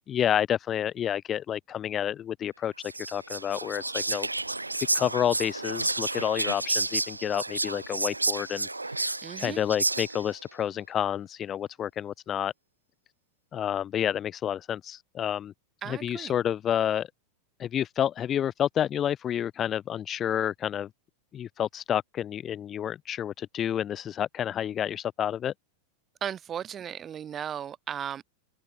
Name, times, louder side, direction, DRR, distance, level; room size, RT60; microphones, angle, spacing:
voice 1, 0.1-2.7 3.1-4.3 4.9-8.7 9.4-12.5 13.5-15.5 15.9-17.1 17.6-20.9 21.3-25.5, left 10 dB, 25° left, 0.9 m, -29 dB
Whispering, 2.8-10.4, right 2 dB, 85° right, 1.2 m, -31 dB
voice 2, 9.2-9.6 15.8-16.3 26.2-28.2, right 9 dB, 25° right, 5.2 m, -36 dB
open air
figure-of-eight pair, 90°, 0 cm